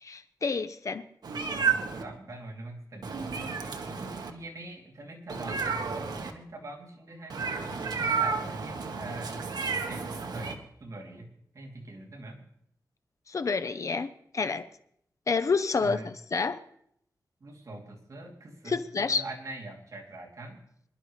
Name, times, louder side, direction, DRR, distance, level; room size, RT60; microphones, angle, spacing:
voice 1, 0.0-1.0 13.3-14.7 15.3-16.6 18.7-19.2, left 4 dB, 50° left, 11 dB, 0.7 m, -29 dB
Meow, 1.2-2.0 3.0-4.3 5.3-6.3 7.3-10.5, right 5 dB, 75° right, 1.3 m, -31 dB
voice 2, 2.0-9.4 9.9-11.3 11.5-12.4 15.8-16.1 17.4-20.6, right 2 dB, 50° right, 0 dB, 2.9 m, -43 dB
25.5 x 11.5 x 3.2 m, 0.70 s
wide cardioid pair, 100°, 7 cm